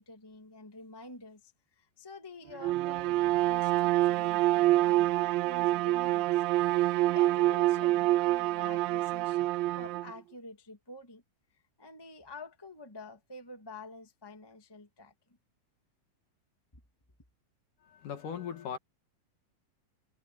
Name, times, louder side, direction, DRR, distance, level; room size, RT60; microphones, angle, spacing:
voice 1, 0.0-6.4 6.7-9.5 9.7-11.2 11.5-15.1, left 2 dB, 15° left, 0.9 m, -48 dB
Bowed string instrument, 2.6-10.1, right 16 dB, 80° right, 2.3 m, -26 dB
voice 2, 17.8-18.8, left 8 dB, 65° left, 3.2 m, -39 dB
omnidirectional pair, 4.2 m